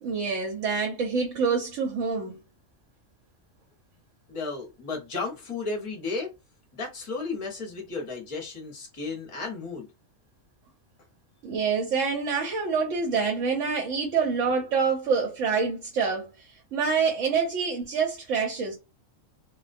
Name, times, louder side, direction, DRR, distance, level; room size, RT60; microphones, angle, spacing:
voice 1, 0.0-2.4 11.4-18.8, right 5 dB, 75° right, 1.0 m, -26 dB
voice 2, 4.3-6.3 6.7-9.9, left 4 dB, 30° left, 0.7 m, -34 dB
2.3 x 2.2 x 2.5 m
omnidirectional pair, 1.3 m